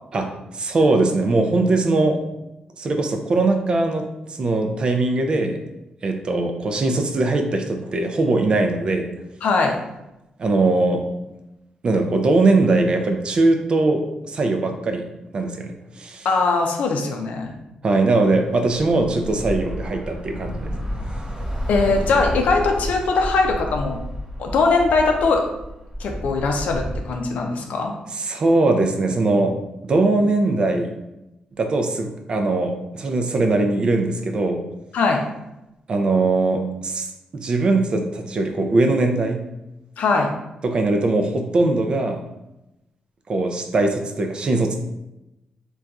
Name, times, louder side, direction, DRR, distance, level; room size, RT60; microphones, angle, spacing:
voice 1, 0.1-2.2 2.8-5.6 6.0-9.1 10.4-11.0 11.8-15.0 15.3-16.3 17.8-20.7 28.1-29.6 29.8-30.9 31.6-34.6 35.9-37.1 37.3-39.4 40.6-42.2 43.3-44.7, right 2 dB, 40° right, 4 dB, 0.3 m, -20 dB
voice 2, 9.4-9.8 16.2-17.5 21.7-24.0 24.4-25.4 26.0-27.9 34.9-35.2 40.0-40.3, left 3 dB, 75° left, 3 dB, 0.5 m, -20 dB
Bus / Traffic noise roadway noise, 18.2-27.0, equal, 10° right, 1.1 m, -31 dB
2.4 x 2.3 x 3.9 m, 0.93 s
wide cardioid pair, 150°, 3 cm